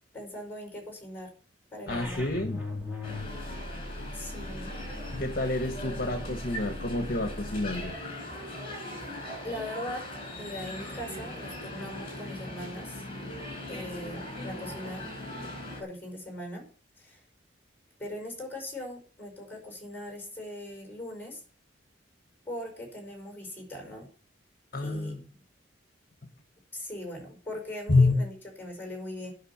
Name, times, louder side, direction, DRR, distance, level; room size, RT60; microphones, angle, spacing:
voice 1, 0.1-1.3 1.7-2.2 4.1-4.7 9.4-10.1 10.4-13.0 13.7-15.0 15.8-16.6 17.0-17.2 18.0-21.4 22.5-24.1 24.8-25.2 26.7-29.3, left 1 dB, 10° left, 2 dB, 5.5 m, -40 dB
voice 2, 1.9-2.6 5.1-8.0 24.7-25.2 27.9-28.1, left 2 dB, 50° left, 7 dB, 1.3 m, -27 dB
sound 1, 1.9-7.9, left 1 dB, 10° right, 2.6 m, -40 dB
sound 2, 3.0-15.8, left 1 dB, 30° left, 5.2 m, -40 dB
10.0 x 6.6 x 8.7 m, 0.41 s
head